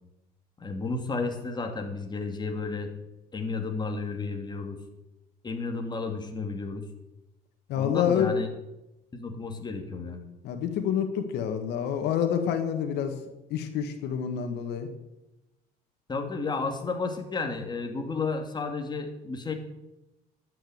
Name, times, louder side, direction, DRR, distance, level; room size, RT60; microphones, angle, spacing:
voice 1, 0.6-2.9 3.3-4.8 5.4-6.8 7.8-8.5 9.1-10.2 16.1-19.5, left 4 dB, 25° left, 4 dB, 2.6 m, -32 dB
voice 2, 7.7-8.3 10.4-13.1 13.5-14.9, left 8 dB, 80° left, 7 dB, 1.9 m, -27 dB
13.0 x 9.4 x 8.1 m, 0.95 s
cardioid pair, 110°, 17 cm